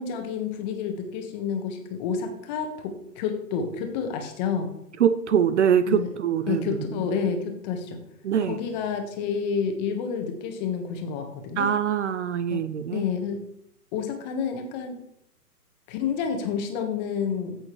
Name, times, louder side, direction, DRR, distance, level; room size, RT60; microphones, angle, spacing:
voice 1, 0.0-4.7 5.9-6.1 6.5-8.0 8.5-11.7 12.5-12.6 12.9-13.4 13.9-15.0 15.9-17.6, left 6 dB, 25° left, 5 dB, 1.4 m, -29 dB
voice 2, 5.0-7.0 8.2-8.6 11.6-13.0, right 8 dB, 50° right, 13 dB, 0.6 m, -24 dB
14.5 x 6.3 x 3.2 m, 0.77 s
hypercardioid pair, 145°, 48 cm